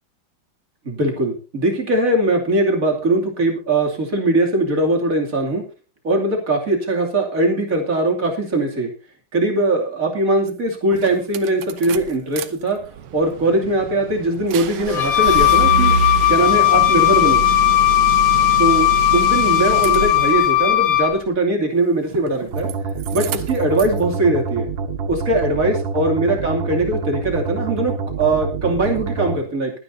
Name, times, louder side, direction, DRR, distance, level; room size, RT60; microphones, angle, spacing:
voice 1, 0.8-5.6 6.0-8.9 9.3-12.8 13.1-15.9 16.3-17.4 18.6-22.7 23.1-24.7 25.1-29.7, right 2 dB, 40° right, 1 dB, 3.1 m, -20 dB
sound 1, 10.5-10.6 10.9-12.5 12.8-20.6 22.0-22.7 23.0-24.0, right 7 dB, 85° right, 1.8 m, -27 dB
Wind instrument woodwind instrument, 14.9-21.2, left 15 dB, 70° left, 2.1 m, -16 dB
sound 2, 22.5-29.4, right 5 dB, 70° right, 2.3 m, -26 dB
22.0 x 10.0 x 2.7 m, 0.34 s
omnidirectional pair, 2.3 m